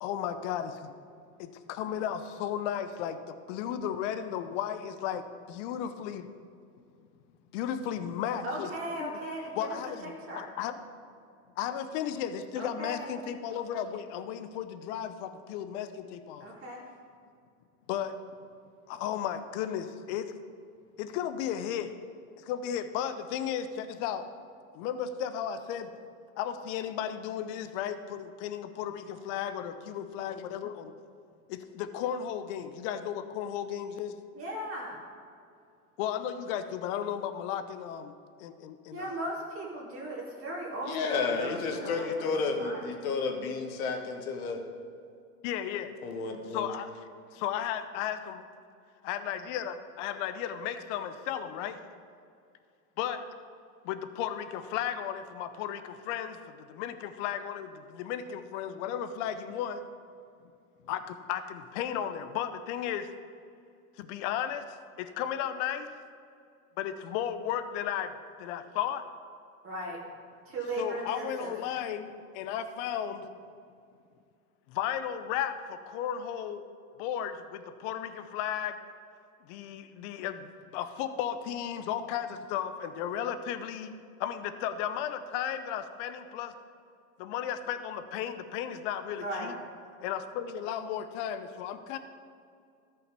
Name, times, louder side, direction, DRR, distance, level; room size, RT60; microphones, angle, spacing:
voice 1, 0.0-0.9 1.4-6.3 7.5-8.7 9.0-9.1 9.6-10.8 11.6-16.5 17.9-18.2 18.9-20.3 21.0-22.0 22.4-24.3 24.7-25.9 26.4-30.9 31.5-34.1 36.0-38.1 38.4-39.2 41.8-41.9 45.4-45.9 46.5-47.1 47.3-48.4 49.0-51.8 53.0-53.2 53.8-59.8 60.8-63.1 64.0-65.9 66.8-68.1 68.4-69.1 70.8-73.3 74.7-76.6 77.0-78.8 79.5-83.9 84.2-86.5 87.2-89.5 90.0-92.0, left 9 dB, 55° left, 10 dB, 0.9 m, -34 dB
voice 2, 8.4-9.7 10.0-10.5 12.6-13.1 16.4-16.8 34.3-35.0 38.9-42.8 69.6-70.0 70.5-71.5 89.2-89.5, right 1 dB, 30° right, -4 dB, 2.6 m, -37 dB
voice 3, 40.9-44.6 46.0-46.7, left 4 dB, 70° left, 4 dB, 1.6 m, -31 dB
13.5 x 5.9 x 5.3 m, 2.4 s
hypercardioid pair, 100°, 43 cm